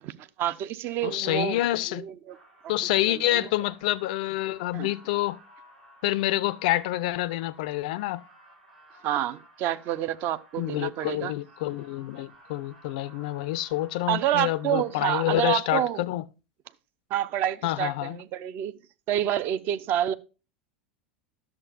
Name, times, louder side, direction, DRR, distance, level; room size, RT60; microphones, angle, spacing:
voice 1, 0.0-1.6 1.9-2.4 2.6-2.7 3.1-3.5 4.7-4.9 9.0-11.3 14.1-16.0 17.1-18.8 19.1-20.1, right 11 dB, 40° right, 0.5 m, -28 dB
voice 2, 1.0-2.1 2.7-5.4 6.0-8.2 10.6-16.2 17.6-18.2, left 16 dB, 55° left, 0.4 m, -27 dB
sound 1, 2.3-15.2, right 1 dB, 70° right, 3.9 m, -55 dB
11.0 x 6.9 x 2.4 m
figure-of-eight pair, 80°, 5 cm